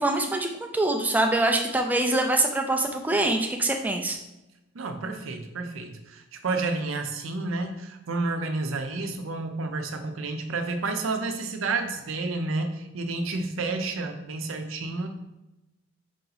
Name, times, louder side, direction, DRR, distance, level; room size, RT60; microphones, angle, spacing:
voice 1, 0.0-4.2, right 2 dB, 10° right, 3 dB, 0.3 m, -24 dB
voice 2, 4.7-15.1, right 3 dB, 75° right, 6 dB, 0.6 m, -30 dB
4.7 x 2.9 x 3.9 m, 0.95 s
head